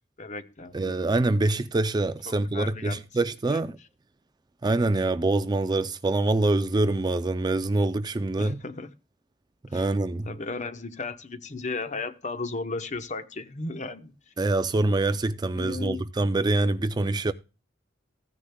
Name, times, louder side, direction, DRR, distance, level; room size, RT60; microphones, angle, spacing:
voice 1, 0.2-1.1 2.3-3.0 8.4-8.9 9.7-9.9 10.3-14.1 15.5-16.0, left 3 dB, 40° left, 0.9 m, -35 dB
voice 2, 0.7-3.8 4.6-8.6 9.7-10.3 14.4-17.3, right 2 dB, 20° right, 0.4 m, -25 dB
15.5 x 9.8 x 2.2 m
head